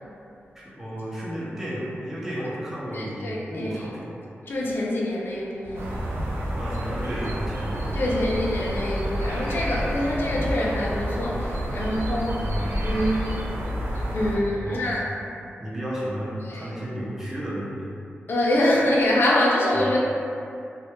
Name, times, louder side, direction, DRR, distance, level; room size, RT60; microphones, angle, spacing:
voice 1, 0.5-4.2 6.6-8.4 12.4-12.8 14.6-15.1 15.6-17.9 19.8-19.9, equal, 10° right, -7 dB, 0.5 m, -33 dB
voice 2, 2.9-3.8 4.5-5.9 7.9-13.3 13.9-15.0 16.4-16.7 18.3-20.0, left 1 dB, 60° left, -4 dB, 0.4 m, -25 dB
sound 1, 5.6-14.8, equal, 25° left, 0.7 m, -41 dB
sound 2, 5.8-14.4, equal, 75° right, 0.4 m, -29 dB
2.1 x 2.1 x 2.8 m, 2.5 s
wide cardioid pair, 145°, 4 cm